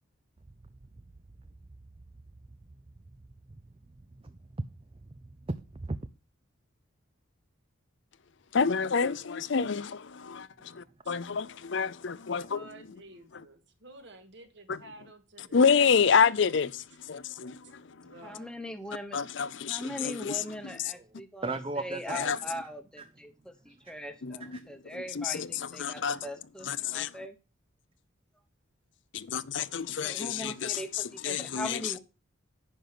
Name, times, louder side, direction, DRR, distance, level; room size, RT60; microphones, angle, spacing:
voice 1, 4.2-4.7 5.1-6.0 21.4-22.4 23.0-23.1 24.5-24.6, right 2 dB, 25° right, 0.5 m, -36 dB
voice 2, 8.5-12.7 14.7-14.8 15.5-18.1 19.1-20.4 22.1-22.4 24.2-24.6 24.9-26.3 26.6-27.2 29.1-31.9, left 6 dB, 60° left, 0.5 m, -28 dB
voice 3, 12.5-15.6 17.3-19.0, right 2 dB, 55° right, 1.9 m, -52 dB
voice 4, 18.2-19.2 19.7-27.4 30.0-32.0, left 1 dB, 5° left, 0.9 m, -40 dB
10.5 x 5.4 x 5.9 m
head